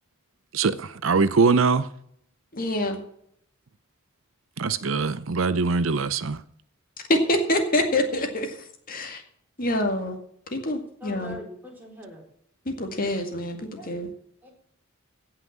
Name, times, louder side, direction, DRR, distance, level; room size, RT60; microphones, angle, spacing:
voice 1, 0.5-1.9 4.6-6.4, right 4 dB, 70° right, 14 dB, 0.7 m, -22 dB
voice 2, 2.5-3.0 7.1-8.6 8.9-9.2 9.6-10.2 10.5-11.4 12.7-14.1, left 1 dB, 45° left, 4 dB, 2.0 m, -26 dB
voice 3, 11.0-12.2 13.7-13.9 14.4-14.5, left 1 dB, 10° right, -1 dB, 4.3 m, -42 dB
17.5 x 5.9 x 7.4 m, 0.68 s
head